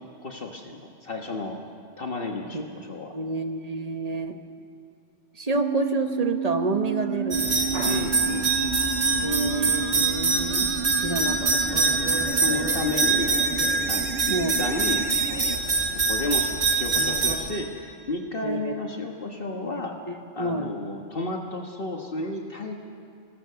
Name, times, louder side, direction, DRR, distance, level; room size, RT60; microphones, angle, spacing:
voice 1, 0.2-1.6 2.0-3.1 7.9-8.5 12.3-13.4 13.9-15.6 16.1-20.0 20.3-22.7, left 2 dB, 55° left, 1 dB, 1.5 m, -32 dB
voice 2, 3.1-4.4 5.4-8.0 9.2-10.7 10.9-11.9 14.3-14.7 18.4-18.7 19.8-20.7, right 2 dB, 35° right, 7 dB, 1.2 m, -29 dB
sound 1, 5.5-15.6, right 6 dB, 85° right, 1.3 m, -32 dB
sound 2, 7.3-17.4, right 3 dB, 65° right, 2.2 m, -24 dB
25.0 x 19.0 x 6.8 m, 2.5 s
omnidirectional pair, 1.1 m